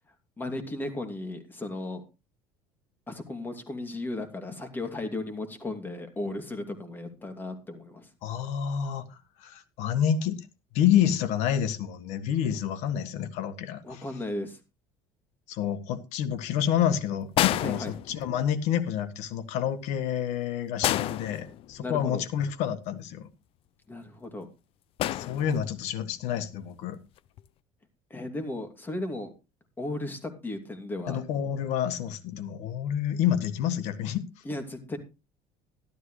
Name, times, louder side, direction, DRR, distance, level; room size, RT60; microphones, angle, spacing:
voice 1, 0.4-2.0 3.1-8.1 13.8-14.6 17.5-17.9 21.8-22.2 23.9-24.5 28.1-29.3 29.8-31.2 34.4-35.0, left 2 dB, 15° left, 2.6 m, -35 dB
voice 2, 8.2-10.5 10.7-14.0 15.5-23.3 25.1-27.0 31.1-34.2, left 9 dB, 70° left, 1.6 m, -28 dB
sound 1, 17.3-18.6 20.8-22.0 25.0-25.9 27.2-27.4, left 13 dB, 50° left, 0.5 m, -30 dB
12.5 x 12.5 x 3.2 m
cardioid pair, 120°, 12 cm